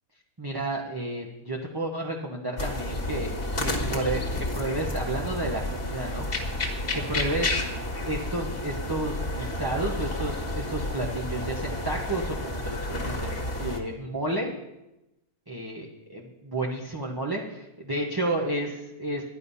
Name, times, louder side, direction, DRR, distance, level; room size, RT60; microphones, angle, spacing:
voice 1, 0.4-3.3 3.6-4.2 4.5-6.7 6.9-7.6 8.0-13.3 13.6-14.5 15.5-15.8 16.1-19.2, right 1 dB, 15° right, -2 dB, 1.0 m, -31 dB
sound 1, 2.6-13.8, left 1 dB, 40° left, 1.8 m, -31 dB
11.0 x 10.5 x 5.5 m, 0.94 s
omnidirectional pair, 1.6 m